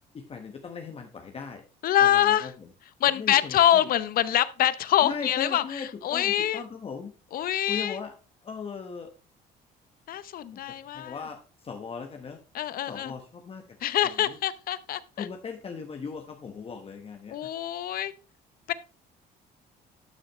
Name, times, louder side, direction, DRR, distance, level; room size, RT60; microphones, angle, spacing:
voice 1, 0.1-1.6 2.0-2.5 3.2-3.8 5.0-7.1 7.7-8.1 8.4-9.1 10.5-10.6 10.9-12.4 12.9-13.8 14.3-14.4 15.2-17.5, left 5 dB, 35° left, 1.1 m, -38 dB
voice 2, 1.8-2.5 3.0-6.6 7.3-8.0 10.1-11.2 12.5-13.1 13.8-15.3 17.3-18.1 18.7-18.8, left 11 dB, 60° left, 0.7 m, -25 dB
12.0 x 6.4 x 3.0 m
cardioid pair, 110°, 17 cm